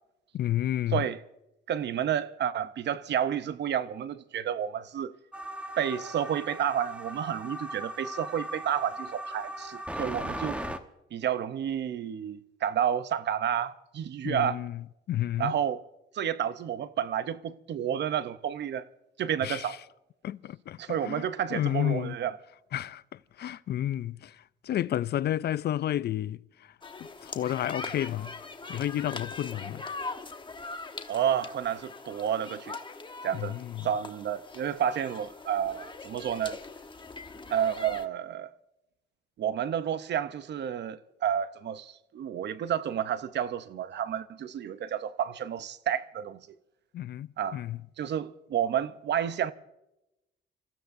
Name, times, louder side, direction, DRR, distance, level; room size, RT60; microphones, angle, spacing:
voice 1, 0.3-1.1 14.2-15.5 19.4-19.8 20.2-22.2 22.7-26.7 27.0-28.3 28.7-29.8 33.3-33.9 46.9-47.8, left 12 dB, 55° left, 0.4 m, -31 dB
voice 2, 1.7-5.2 5.8-10.6 11.1-14.6 15.4-15.8 16.1-18.9 19.2-19.8 20.8-22.4 31.1-32.8 33.2-33.6 33.8-36.6 37.5-38.5 39.4-46.5 47.4-47.6 48.0-49.5, right 9 dB, 60° right, 0.7 m, -30 dB
sound 1, 5.3-10.8, right 1 dB, 5° right, 1.1 m, -38 dB
sound 2, 26.8-38.0, left 3 dB, 25° left, 1.1 m, -42 dB
28.0 x 15.0 x 2.6 m
cardioid pair, 90°, 20 cm